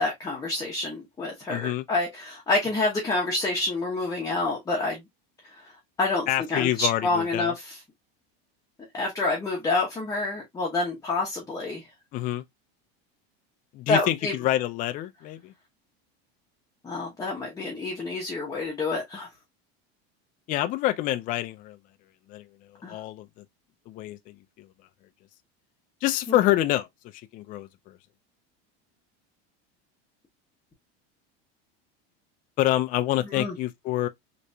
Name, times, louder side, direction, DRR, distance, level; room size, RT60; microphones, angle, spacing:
voice 1, 0.0-5.0 5.4-5.7 6.0-7.8 8.9-11.9 13.9-14.3 16.8-19.3 22.8-23.0 26.3-26.4 33.2-33.5, left 3 dB, 10° left, 0.8 m, -28 dB
voice 2, 1.5-1.8 6.3-7.5 12.1-12.4 13.7-15.5 20.5-21.8 22.3-22.4 22.9-23.3 23.9-24.7 26.0-26.9 27.3-28.0 32.6-34.1, left 14 dB, 30° left, 0.3 m, -27 dB
3.3 x 3.0 x 2.6 m
supercardioid pair, 155°, 31 cm